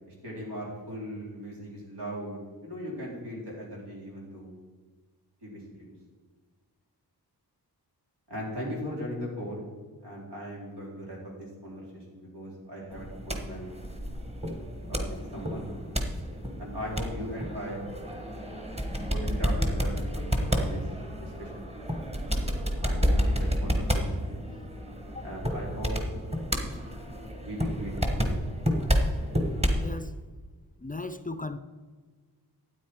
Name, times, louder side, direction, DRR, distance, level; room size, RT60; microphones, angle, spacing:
voice 1, 0.2-4.5 5.4-5.9 8.3-9.7 10.0-13.7 14.9-15.7 16.6-17.9 19.0-20.9 21.1-21.7 22.8-24.2 25.2-25.9 27.4-28.4, equal, 85° right, -3 dB, 4.1 m, -38 dB
sound 1, 12.9-29.9, equal, 15° right, 1.3 m, -30 dB
voice 2, 29.8-30.1 30.8-31.6, left 3 dB, 20° left, 11 dB, 0.4 m, -36 dB
13.0 x 9.2 x 4.7 m, 1.4 s
wide cardioid pair, 135°, 39 cm